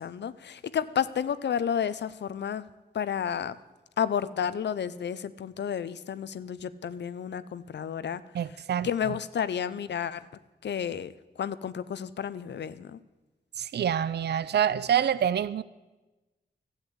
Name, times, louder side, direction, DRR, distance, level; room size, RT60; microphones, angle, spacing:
voice 1, 0.0-2.7 2.9-3.5 4.0-8.2 8.8-10.2 10.6-11.1 11.4-13.0, left 8 dB, 75° left, 0.6 m, -31 dB
voice 2, 8.3-8.9 13.6-15.6, right 9 dB, 70° right, 0.4 m, -26 dB
12.5 x 8.2 x 8.1 m
cardioid pair, 45°, 18 cm